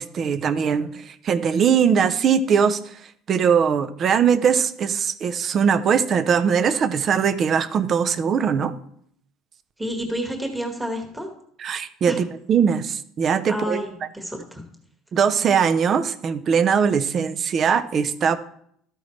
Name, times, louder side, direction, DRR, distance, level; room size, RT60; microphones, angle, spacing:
voice 1, 0.0-2.8 3.3-8.7 11.6-13.8 15.1-18.4, right 7 dB, 35° right, 13 dB, 0.6 m, -21 dB
voice 2, 9.8-11.3 12.1-12.2 13.5-14.6, equal, 5° right, 2 dB, 1.5 m, -29 dB
13.0 x 9.2 x 3.2 m, 0.67 s
cardioid pair, 150°, 0 cm